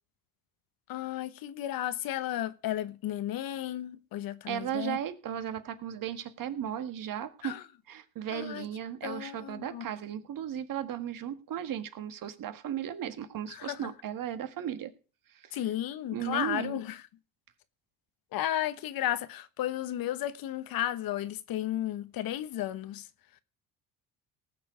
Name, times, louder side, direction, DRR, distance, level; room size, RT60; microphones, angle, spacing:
voice 1, 0.9-5.0 7.4-7.6 8.3-8.7 9.0-9.8 13.6-13.8 15.5-16.9 18.3-23.0, left 12 dB, 55° left, 1.2 m, -33 dB
voice 2, 4.5-7.6 7.9-14.9 15.3-15.7 16.1-16.8, right 10 dB, 50° right, 1.7 m, -36 dB
18.5 x 6.9 x 5.0 m
hypercardioid pair, 70°, 41 cm